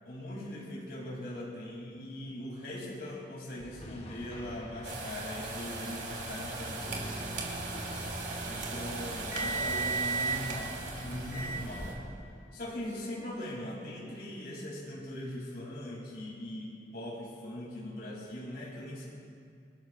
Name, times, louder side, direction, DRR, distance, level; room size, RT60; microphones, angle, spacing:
voice 1, 0.0-7.2 8.5-11.9 12.5-19.1, left 1 dB, 60° left, -5 dB, 3.0 m, -40 dB
sound 1, 3.6-12.0, equal, 35° left, 1.3 m, -47 dB
sound 2, 4.8-11.9, right 3 dB, 85° right, 2.7 m, -36 dB
sound 3, 6.8-12.2, right 1 dB, 15° right, 2.4 m, -46 dB
28.0 x 13.0 x 2.5 m, 2.3 s
head